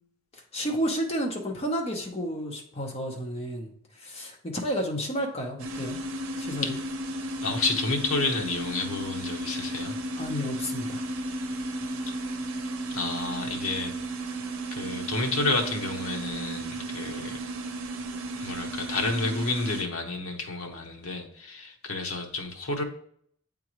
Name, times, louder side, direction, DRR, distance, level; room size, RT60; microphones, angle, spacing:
voice 1, 0.3-6.0 6.4-6.8 10.2-11.0, equal, 25° left, 1 dB, 0.8 m, -31 dB
sound 1, 5.6-19.8, right 1 dB, 65° right, 0.7 m, -34 dB
voice 2, 7.4-10.0 12.9-13.9 14.7-17.4 18.4-22.8, left 3 dB, 75° left, 3 dB, 0.9 m, -30 dB
8.3 x 3.7 x 3.1 m, 0.64 s
head